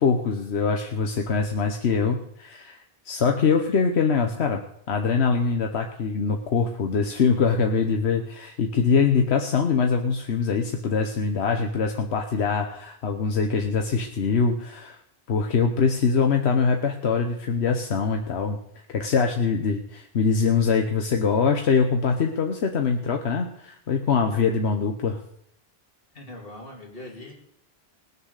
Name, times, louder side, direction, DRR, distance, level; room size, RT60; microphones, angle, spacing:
voice 1, 0.0-15.0 15.3-18.6 18.9-25.2, left 5 dB, 90° left, 4 dB, 1.2 m, -23 dB
voice 2, 26.1-27.3, left 1 dB, 60° left, 0 dB, 3.0 m, -41 dB
20.0 x 6.8 x 6.5 m, 0.74 s
omnidirectional pair, 1.1 m